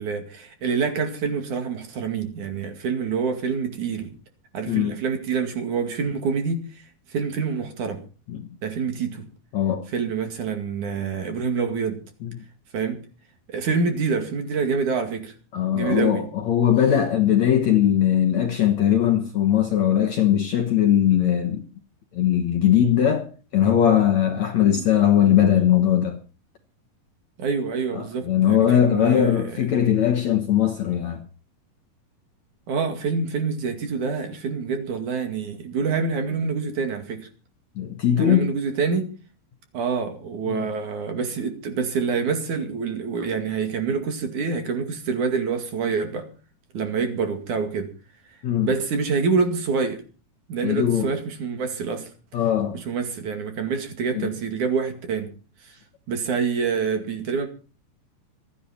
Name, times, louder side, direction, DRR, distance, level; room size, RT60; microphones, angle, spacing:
voice 1, 0.0-4.1 4.5-6.6 7.1-8.0 8.6-9.3 9.9-12.0 12.7-13.0 13.5-15.3 15.7-16.3 24.6-24.8 27.4-29.4 32.7-37.3 38.2-39.1 39.7-46.3 46.7-47.9 48.6-50.0 50.5-52.1 52.7-55.3 55.6-55.7 56.1-57.5, right 5 dB, 55° right, 3.4 m, -26 dB
voice 2, 9.5-9.9 12.2-12.3 15.5-21.6 22.1-26.2 27.9-31.3 37.8-38.5 40.5-40.6 48.4-48.7 50.6-51.1 52.3-52.8 54.1-54.3, left 10 dB, 60° left, 2.0 m, -20 dB
26.5 x 10.5 x 4.3 m
omnidirectional pair, 4.6 m